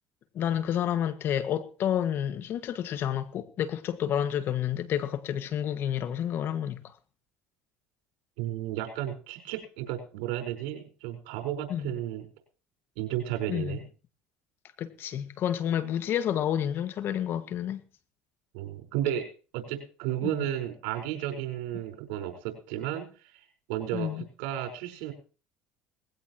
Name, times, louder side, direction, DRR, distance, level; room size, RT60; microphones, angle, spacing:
voice 1, 0.4-6.8 11.7-11.9 13.5-13.8 14.8-17.8 20.2-20.3 23.9-24.3, left 10 dB, 55° left, 1.9 m, -29 dB
voice 2, 8.4-12.2 13.0-13.8 18.5-19.3 19.5-23.1 23.3-25.1, right 12 dB, 80° right, 5.0 m, -33 dB
19.5 x 16.5 x 3.1 m
supercardioid pair, 80°, 4 cm